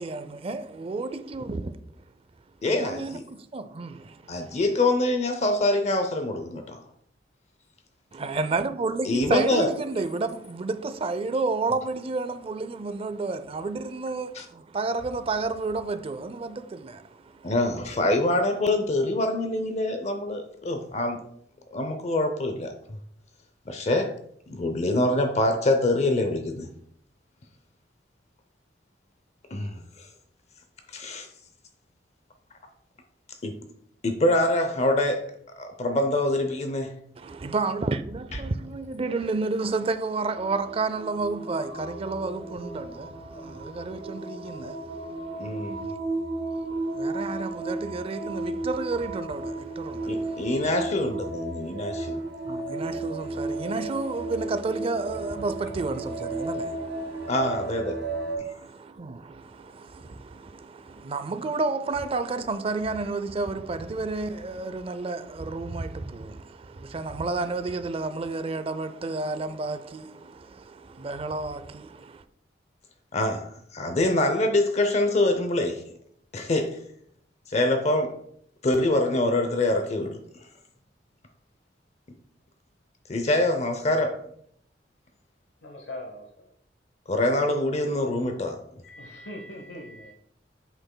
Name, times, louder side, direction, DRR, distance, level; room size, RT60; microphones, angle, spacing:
voice 1, 0.0-1.8 2.6-4.6 8.1-17.5 37.2-45.9 46.5-50.5 52.0-52.2 52.4-57.3 58.5-72.2, right 3 dB, 35° right, 0.4 m, -31 dB
voice 2, 2.6-3.2 4.3-6.8 9.0-9.7 14.3-14.4 17.4-21.2 21.7-22.7 23.7-24.1 24.5-26.7 29.5-30.1 30.9-31.3 33.4-33.6 34.0-35.2 35.6-36.9 45.4-45.9 50.1-52.2 57.3-58.0 58.4-58.5 73.1-75.8 76.3-76.8 77.5-78.1 78.6-80.2 83.1-84.2 87.1-88.6, left 1 dB, 40° left, 0.6 m, -25 dB
sound 1, 40.4-58.4, right 2 dB, 70° right, 1.7 m, -34 dB
voice 3, 85.6-86.5 88.8-90.1, left 1 dB, 80° left, 0.9 m, -41 dB
7.9 x 6.0 x 2.2 m
head